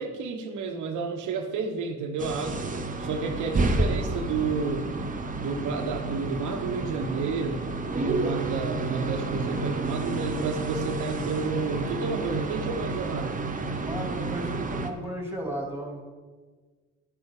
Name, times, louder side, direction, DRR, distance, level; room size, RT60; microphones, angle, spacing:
voice 1, 0.0-2.7 3.0-4.9 5.4-7.6 7.9-13.4, right 4 dB, 80° right, 5 dB, 1.3 m, -31 dB
sound 1, 2.2-14.9, right 2 dB, 25° right, 1.1 m, -30 dB
voice 2, 13.8-16.0, right 1 dB, 10° right, 0 dB, 3.0 m, -34 dB
11.0 x 7.6 x 5.0 m, 1.4 s
cardioid pair, 90°, 30 cm